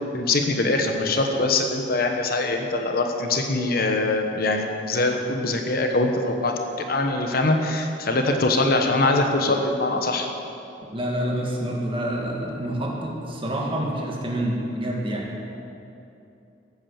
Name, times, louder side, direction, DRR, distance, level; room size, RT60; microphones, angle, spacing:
voice 1, 0.1-10.3, left 2 dB, 55° left, 4 dB, 1.1 m, -23 dB
voice 2, 10.9-15.3, right 1 dB, 30° right, -1 dB, 1.9 m, -27 dB
14.0 x 8.9 x 7.2 m, 2.7 s
head